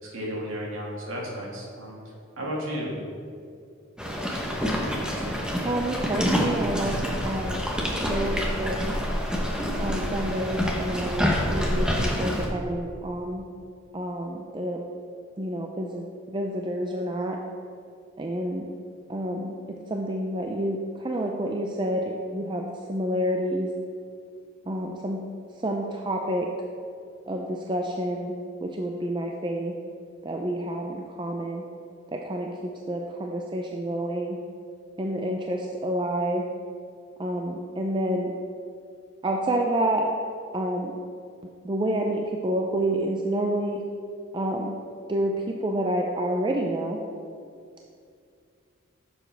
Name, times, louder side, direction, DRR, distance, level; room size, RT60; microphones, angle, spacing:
voice 1, 0.0-2.0 2.4-3.0, equal, 75° right, -3 dB, 2.1 m, -33 dB
sound 1, 4.0-12.5, equal, 5° right, 0.9 m, -27 dB
voice 2, 5.6-7.0 7.2-7.6 8.1-8.8 9.8-13.4 13.9-14.8 15.4-17.4 18.2-18.7 19.1-23.7 24.6-25.2 25.6-26.5 27.3-28.3 28.6-29.7 30.2-31.6 32.1-34.4 35.0-36.4 37.2-38.3 39.2-40.1 40.5-40.9 41.6-43.8 44.3-44.7 45.1-47.0, right 1 dB, 20° right, 1 dB, 0.4 m, -29 dB
10.0 x 7.0 x 3.4 m, 2.4 s
head